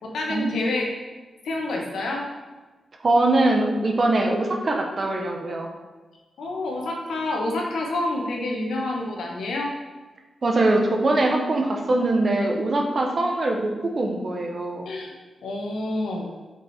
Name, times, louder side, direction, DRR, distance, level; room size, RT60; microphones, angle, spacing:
voice 1, 0.0-0.9 1.4-2.2 6.4-9.7 14.8-15.1 15.4-16.3, left 2 dB, 90° left, -1 dB, 1.4 m, -28 dB
voice 2, 3.0-5.7 10.4-14.9, right 2 dB, 40° right, 2 dB, 1.0 m, -22 dB
6.2 x 5.4 x 4.3 m, 1.3 s
wide cardioid pair, 135°, 0 cm